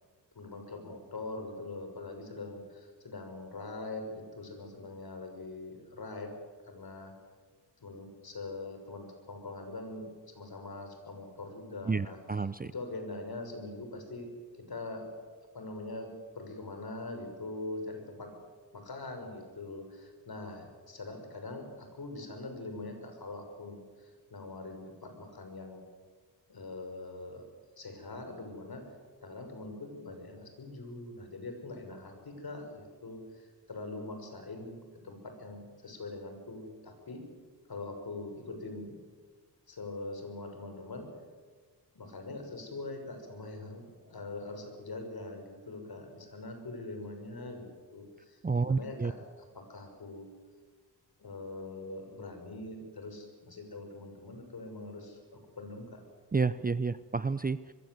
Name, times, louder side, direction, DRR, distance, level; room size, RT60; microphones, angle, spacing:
voice 1, 0.3-6.4 6.7-7.1 7.8-15.1 15.5-18.4 18.7-25.8 26.5-27.5 27.8-28.9 29.2-37.3 37.7-39.0 39.7-41.1 41.9-50.3 51.2-56.0, left 2 dB, 55° left, 5 dB, 6.5 m, -43 dB
voice 2, 11.9-12.7 48.4-49.1 56.3-57.6, right 4 dB, 20° right, 15 dB, 0.6 m, -30 dB
25.0 x 22.0 x 8.1 m, 1.5 s
cardioid pair, 80°, 44 cm